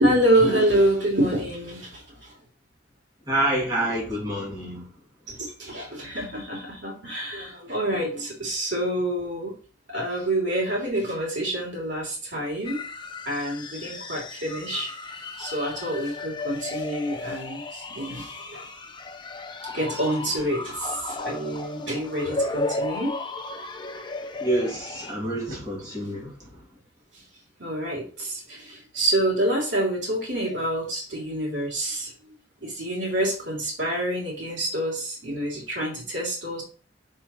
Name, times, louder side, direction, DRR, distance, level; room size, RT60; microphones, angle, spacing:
voice 1, 0.0-2.3 5.3-9.5 9.9-12.8 13.2-18.7 19.6-23.2 27.6-32.1 32.6-36.6, right 1 dB, 70° right, 3.2 m, -27 dB
voice 2, 3.3-4.9 24.4-26.7, right 1 dB, 20° right, 2.7 m, -27 dB
sound 1, 12.6-25.1, left 3 dB, 25° left, 0.7 m, -34 dB
6.2 x 4.8 x 4.3 m
head